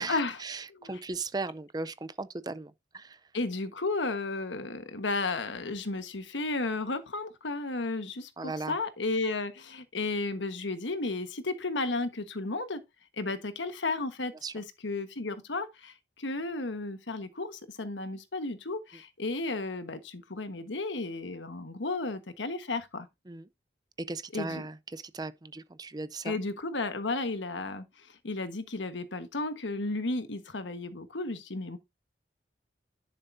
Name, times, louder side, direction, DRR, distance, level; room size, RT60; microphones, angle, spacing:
voice 1, 0.0-3.3 8.4-8.8 14.4-14.6 23.3-23.5 24.0-26.4, right 3 dB, 20° right, 0.5 m, -37 dB
voice 2, 3.3-12.8 13.2-23.1 24.3-24.6 26.2-27.8 28.2-31.8, left 3 dB, 90° left, 1.3 m, -33 dB
10.5 x 6.7 x 2.6 m
head